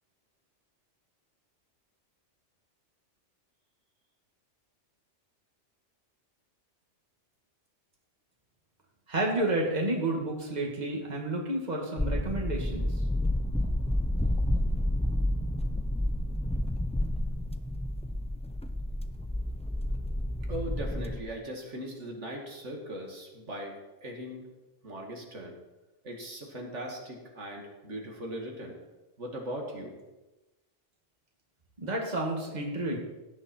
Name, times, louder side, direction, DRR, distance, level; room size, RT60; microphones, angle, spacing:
voice 1, 9.1-13.0 31.8-33.0, right 1 dB, 35° right, -1 dB, 2.3 m, -30 dB
sound 1, 12.0-21.2, left 1 dB, 5° left, 0.5 m, -30 dB
voice 2, 20.5-24.5 24.8-25.6 26.0-28.8 29.2-30.0, equal, 70° right, 0 dB, 2.5 m, -39 dB
16.5 x 10.5 x 4.5 m, 1.1 s
omnidirectional pair, 1.3 m